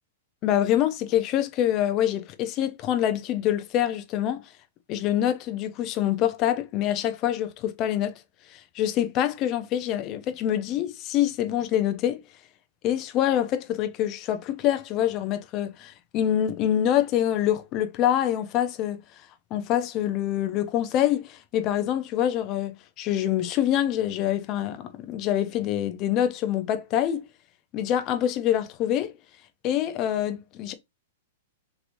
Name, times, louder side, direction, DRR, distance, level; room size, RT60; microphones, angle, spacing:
voice 1, 0.4-4.4 4.9-8.2 8.5-12.2 12.8-19.0 19.5-27.3 27.7-29.1 29.6-30.7, left 11 dB, 40° left, 0.5 m, -25 dB
3.0 x 3.0 x 2.6 m
hypercardioid pair, 115°, 0 cm